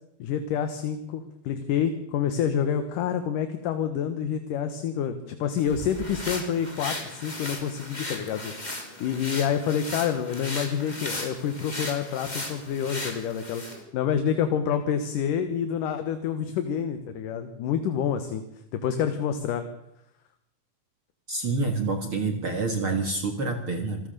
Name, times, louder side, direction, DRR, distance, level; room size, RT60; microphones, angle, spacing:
voice 1, 0.2-8.5 9.0-13.6 13.9-18.4 18.7-19.6, left 8 dB, 70° left, 9 dB, 2.7 m, -28 dB
sound 1, 5.6-13.8, left 1 dB, 10° left, 3.1 m, -36 dB
voice 2, 21.3-24.1, right 3 dB, 45° right, 6 dB, 2.0 m, -27 dB
27.0 x 15.0 x 6.7 m, 0.79 s
omnidirectional pair, 4.2 m